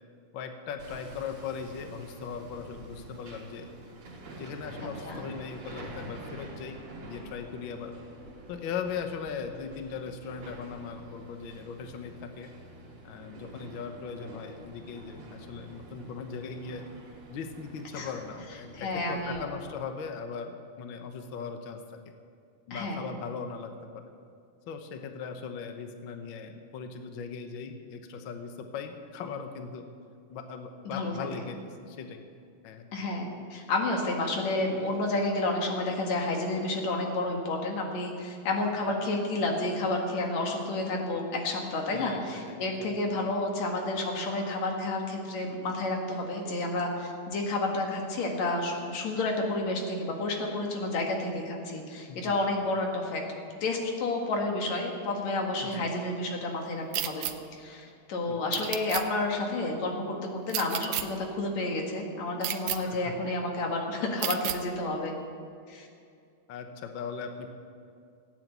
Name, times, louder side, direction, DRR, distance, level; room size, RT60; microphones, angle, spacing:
voice 1, 0.3-3.7 4.4-6.8 7.0-7.9 8.5-12.5 13.0-16.8 17.3-21.8 22.7-24.1 24.7-29.8 30.3-32.3 32.6-32.9 41.9-42.2 42.5-43.0 52.1-52.4 55.6-55.9 58.3-58.6 62.9-63.1 66.5-67.5, left 6 dB, 85° left, 6 dB, 1.0 m, -39 dB
Hammer, 0.8-19.4, right 2 dB, 60° right, 3.9 m, -47 dB
voice 2, 18.7-19.4 22.7-23.0 30.9-31.1 32.9-53.2 53.6-65.2 65.7-65.9, left 2 dB, 60° left, 1 dB, 3.0 m, -30 dB
sound 1, 56.9-57.3 58.5-59.0 60.5-61.0 62.4-62.8 64.2-64.6, right 12 dB, 80° right, 1.4 m, -31 dB
16.5 x 9.1 x 8.1 m, 2.4 s
omnidirectional pair, 3.7 m